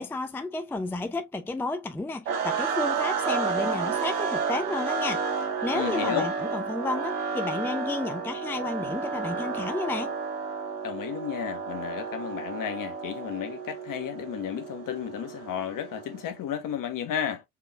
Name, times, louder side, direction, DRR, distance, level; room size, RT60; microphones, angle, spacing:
voice 1, 0.0-5.2 5.6-10.1, left 2 dB, 5° left, 0.6 m, -32 dB
sound 1, 2.3-16.4, right 5 dB, 80° right, 1.3 m, -31 dB
voice 2, 5.7-6.3 10.8-17.4, left 9 dB, 45° left, 1.3 m, -33 dB
4.5 x 3.7 x 2.2 m
hypercardioid pair, 75°, 46 cm